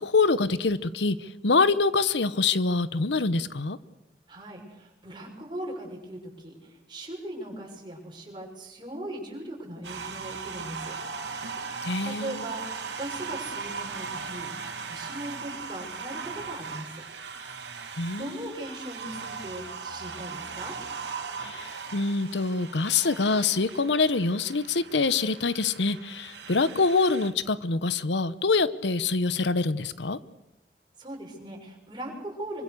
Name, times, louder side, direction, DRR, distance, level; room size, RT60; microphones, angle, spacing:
voice 1, 0.0-3.8 11.8-12.4 18.0-18.5 21.4-30.2, left 4 dB, 80° left, 15 dB, 0.9 m, -25 dB
voice 2, 4.3-11.0 12.0-14.5 14.8-17.0 18.2-20.8 31.0-32.6, right 1 dB, 25° right, 0 dB, 6.7 m, -39 dB
sound 1, 9.8-27.3, right 5 dB, 80° right, 3.5 m, -38 dB
26.5 x 24.5 x 6.8 m, 0.90 s
head